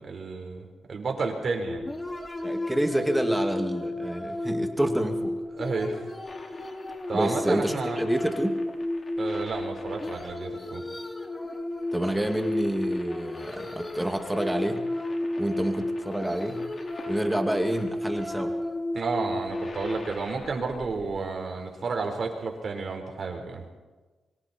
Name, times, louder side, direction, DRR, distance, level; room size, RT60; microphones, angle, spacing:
voice 1, 0.0-1.9 5.5-6.1 7.1-8.0 9.2-10.8 18.9-23.6, right 4 dB, 55° right, 4 dB, 4.4 m, -31 dB
sound 1, 1.7-21.2, left 1 dB, 20° left, 2.4 m, -33 dB
voice 2, 2.4-5.4 7.1-8.6 11.9-14.8 15.4-16.6 17.1-18.5, right 1 dB, 5° right, 5 dB, 2.3 m, -28 dB
sound 2, 6.2-18.1 19.1-21.0 22.6-22.7, left 3 dB, 45° left, 3.4 m, -47 dB
25.5 x 24.0 x 4.5 m, 1.3 s
cardioid pair, 80°, 0 cm